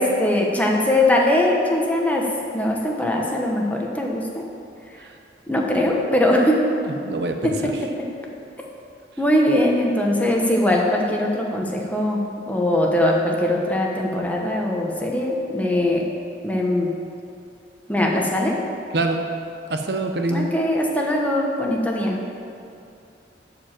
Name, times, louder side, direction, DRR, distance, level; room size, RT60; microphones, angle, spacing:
voice 1, 0.0-2.2 2.5-4.4 5.5-6.6 8.0-8.1 9.2-12.2 12.5-16.0 16.4-16.9 17.9-18.6 20.3-22.2, left 1 dB, 10° left, -1 dB, 1.1 m, -21 dB
voice 2, 6.8-7.7 18.9-19.2 19.7-20.5, right 2 dB, 65° right, 5 dB, 0.8 m, -25 dB
11.5 x 5.0 x 7.5 m, 2.6 s
head